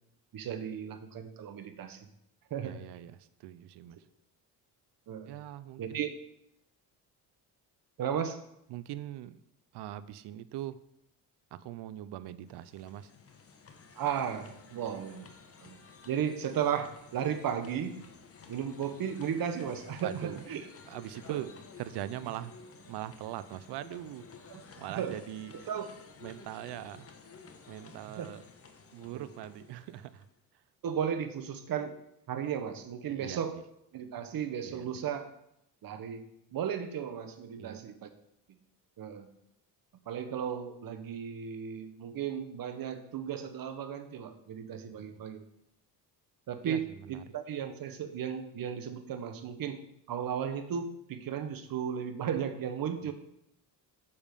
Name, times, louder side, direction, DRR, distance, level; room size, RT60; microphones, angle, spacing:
voice 1, 0.3-2.0 2.5-2.8 5.1-5.3 5.8-6.1 8.0-8.4 14.0-15.3 15.6-15.8 16.1-18.0 18.5-20.6 21.3-21.4 22.2-22.3 24.5-24.6 24.9-25.2 25.7-25.9 28.1-28.3 30.8-32.0 32.3-33.6 33.9-35.3 35.8-38.1 39.0-39.3 40.1-45.4 46.5-49.8 50.1-53.1, right 8 dB, 55° right, 7 dB, 1.2 m, -35 dB
voice 2, 2.6-4.0 5.3-6.0 8.7-9.4 9.7-10.8 11.5-13.1 14.7-14.8 20.0-20.5 20.9-21.5 21.8-22.5 22.9-24.3 24.8-25.7 26.2-27.1 27.7-28.4 28.9-30.3 33.1-33.4 34.6-35.0 37.6-37.9 44.9-45.3 46.6-47.2 53.0-53.1, right 13 dB, 75° right, 15 dB, 0.6 m, -42 dB
sound 1, 12.3-30.4, left 5 dB, 35° left, 1.1 m, -54 dB
7.1 x 6.9 x 5.3 m, 0.79 s
cardioid pair, 105°, 41 cm